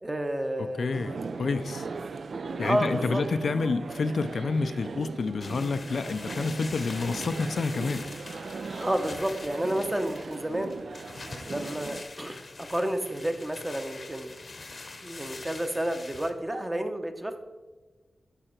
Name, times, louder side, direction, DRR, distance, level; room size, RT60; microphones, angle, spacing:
voice 1, 0.0-0.9 2.5-3.2 8.8-10.7 11.4-14.3 15.0-17.4, right 1 dB, 15° right, 6 dB, 0.8 m, -30 dB
voice 2, 0.6-1.9 2.6-8.0, left 4 dB, 70° left, 9 dB, 0.5 m, -29 dB
sound 1, 0.9-12.0, right 4 dB, 70° right, 0.4 m, -39 dB
sound 2, 5.4-16.3, left 3 dB, 45° left, 0.9 m, -43 dB
11.5 x 4.9 x 4.5 m, 1.3 s
wide cardioid pair, 120°, 0 cm